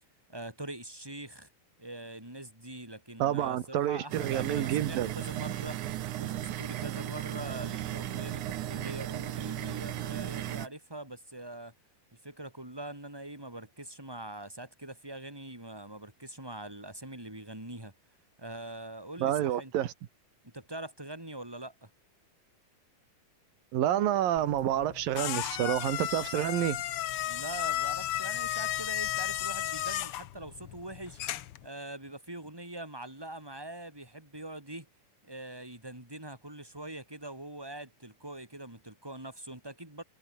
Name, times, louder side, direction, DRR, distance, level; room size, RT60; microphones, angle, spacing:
voice 1, 0.3-1.5 1.8-5.8 6.1-11.7 12.2-17.9 18.4-19.7 20.4-21.9 27.3-31.2 31.6-34.9 35.2-40.0, right 1 dB, 5° right, 5.6 m, -43 dB
voice 2, 3.2-5.1 19.2-19.9 23.7-26.8, right 12 dB, 90° right, 3.3 m, -29 dB
Old desktop pc booting, 4.1-10.7, right 13 dB, 70° right, 2.5 m, -36 dB
sound 1, 24.4-31.7, left 12 dB, 90° left, 1.2 m, -34 dB
omnidirectional pair, 3.9 m